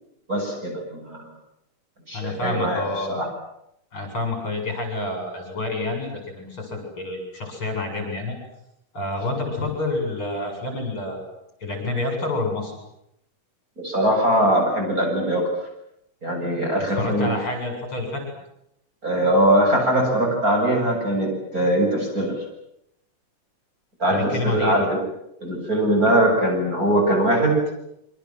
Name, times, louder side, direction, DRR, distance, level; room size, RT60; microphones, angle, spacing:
voice 1, 0.3-1.3 2.1-3.3 13.8-15.5 16.2-17.3 19.0-22.4 24.0-25.0 25.4-27.6, right 1 dB, 25° right, 0 dB, 8.0 m, -21 dB
voice 2, 2.1-3.3 3.9-8.4 8.9-11.2 11.6-12.8 16.8-18.2 24.1-24.9, left 2 dB, 35° left, 4 dB, 8.5 m, -28 dB
28.0 x 25.0 x 7.7 m, 0.78 s
omnidirectional pair, 3.8 m